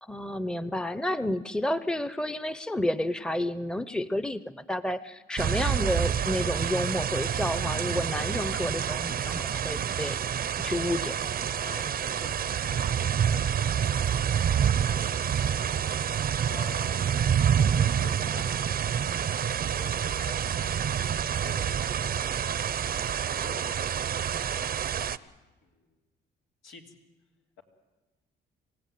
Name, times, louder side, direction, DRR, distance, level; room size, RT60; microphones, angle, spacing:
voice 1, 0.0-10.2 10.6-11.1, left 1 dB, 5° left, 15 dB, 0.8 m, -30 dB
sound 1, 5.4-25.2, right 8 dB, 50° right, 0.8 m, -28 dB
voice 2, 11.6-15.7 16.5-17.2 17.6-20.8 21.4-22.8 23.2-24.6 25.6-25.9 26.6-26.9 27.6-27.7, left 4 dB, 90° left, 1 dB, 3.3 m, -49 dB
26.5 x 16.5 x 9.4 m, 1.2 s
cardioid pair, 90°, 20 cm